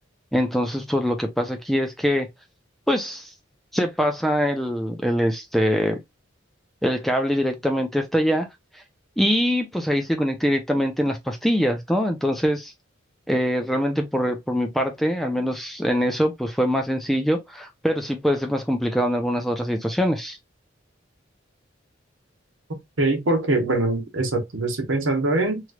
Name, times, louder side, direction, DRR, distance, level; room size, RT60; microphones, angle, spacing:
voice 1, 0.3-2.3 2.9-3.3 3.7-6.0 6.8-8.5 9.2-12.7 13.3-20.4, equal, ahead, 0.5 m, -23 dB
voice 2, 23.0-25.6, right 2 dB, 80° right, 1.0 m, -23 dB
3.1 x 3.0 x 2.3 m
head